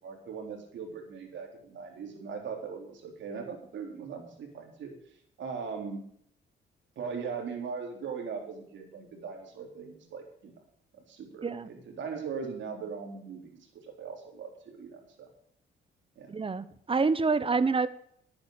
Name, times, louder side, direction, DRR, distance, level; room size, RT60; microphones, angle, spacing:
voice 1, 0.0-4.9 5.4-6.0 7.0-10.5 10.9-15.3 16.2-16.3, right 5 dB, 70° right, 2 dB, 3.9 m, -40 dB
voice 2, 16.3-17.9, right 4 dB, 25° right, 15 dB, 1.0 m, -27 dB
11.5 x 9.0 x 6.6 m, 0.66 s
cardioid pair, 90°, 20 cm